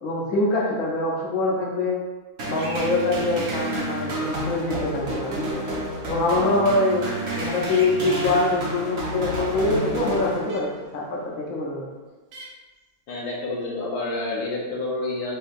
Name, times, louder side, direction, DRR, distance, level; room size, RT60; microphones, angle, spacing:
voice 1, 0.0-2.0 2.4-5.6 6.1-7.1 7.3-11.9, left 2 dB, 65° left, -3 dB, 1.1 m, -24 dB
sound 1, 2.4-10.9, right 1 dB, 55° right, 0.9 m, -30 dB
sound 2, 2.6-2.9 5.1-5.2 7.7-8.1 10.5-10.6 12.3-12.5, right 2 dB, 80° right, 1.3 m, -39 dB
voice 2, 13.1-15.4, left 2 dB, 80° left, -3 dB, 1.3 m, -29 dB
4.4 x 2.8 x 2.5 m, 1.3 s
omnidirectional pair, 1.6 m